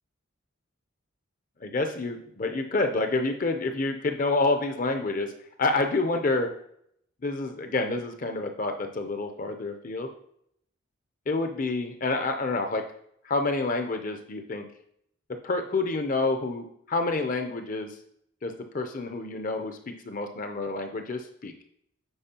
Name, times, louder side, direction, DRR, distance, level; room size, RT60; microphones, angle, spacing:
voice 1, 1.6-5.3 5.6-6.5 7.2-10.1 11.3-12.9 13.2-14.6 15.3-18.0 18.4-21.5, left 3 dB, 40° left, 6 dB, 0.6 m, -28 dB
8.8 x 4.3 x 2.9 m, 0.71 s
head